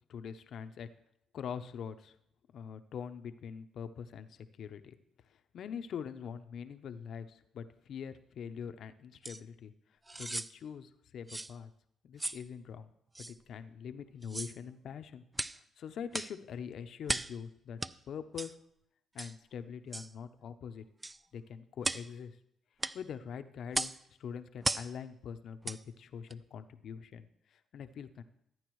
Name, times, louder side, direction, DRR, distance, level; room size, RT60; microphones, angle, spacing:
voice 1, 0.1-0.9 1.3-2.2 2.5-4.9 5.3-9.7 10.1-11.7 12.0-12.9 13.2-15.2 15.5-17.8 18.1-18.6 19.1-20.8 21.3-22.4 22.9-28.2, left 7 dB, 65° left, 9 dB, 0.6 m, -44 dB
sound 1, 9.2-9.4 10.1-10.5 11.3-11.5 12.2-12.4 13.2-13.3 14.2-14.6 15.3-15.6 16.1-16.4 17.1-17.4 17.8-17.9 18.4-18.5 19.2-19.4 19.9-20.1 21.0-21.2 21.8-22.1 22.8-23.0 23.7-24.0 24.6-24.9 25.6-25.8 26.3-26.4, right 2 dB, 15° right, 0.3 m, -36 dB
13.5 x 9.3 x 3.1 m, 0.74 s
cardioid pair, 90°, 0 cm